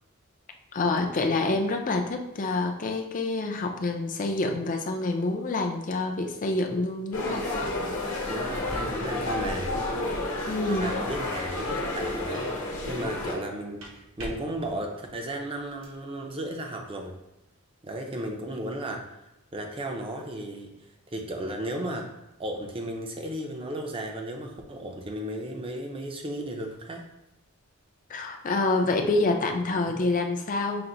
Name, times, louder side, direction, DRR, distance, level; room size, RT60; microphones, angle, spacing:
voice 1, 0.7-7.5 10.5-10.9 28.1-30.8, left 2 dB, 40° left, 4 dB, 0.5 m, -27 dB
sound 1, 7.1-13.3, left 2 dB, 65° left, 1.0 m, -30 dB
voice 2, 8.2-9.9 10.7-12.5 12.9-13.9 14.2-17.2 17.8-19.0 19.5-20.7 21.1-22.1 22.4-27.1 29.7-30.1, right 1 dB, 25° right, 2 dB, 0.6 m, -34 dB
sound 2, 13.8-16.0, right 1 dB, 65° right, 1.0 m, -45 dB
5.9 x 2.1 x 3.8 m, 0.93 s
head